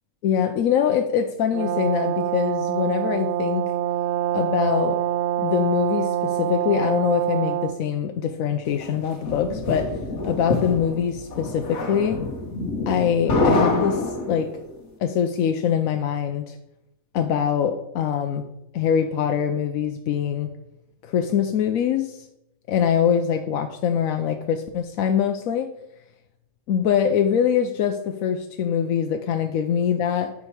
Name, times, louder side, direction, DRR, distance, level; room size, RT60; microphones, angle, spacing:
voice 1, 0.2-3.6 4.3-5.0 5.4-9.9 10.2-12.2 12.9-14.5 15.0-16.5 17.1-18.5 18.7-20.5 21.0-22.3 22.7-25.7 26.7-30.3, left 8 dB, 80° left, 5 dB, 1.0 m, -23 dB
Brass instrument, 1.5-7.8, right 12 dB, 60° right, 0.9 m, -25 dB
sound 1, 8.8-14.7, left 2 dB, 55° left, 1.4 m, -26 dB
9.6 x 5.3 x 4.8 m, 0.85 s
omnidirectional pair, 1.4 m